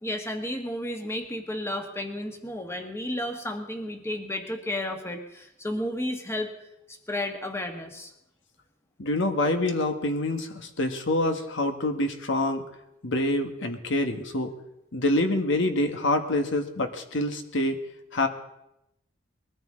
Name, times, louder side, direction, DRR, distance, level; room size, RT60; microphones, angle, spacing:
voice 1, 0.0-6.5 6.9-8.1, left 1 dB, 15° left, 4 dB, 1.6 m, -32 dB
voice 2, 9.0-12.6 13.0-14.5 14.9-17.8 18.1-18.3, left 1 dB, 65° left, 6 dB, 1.5 m, -26 dB
21.5 x 13.5 x 3.8 m, 0.86 s
head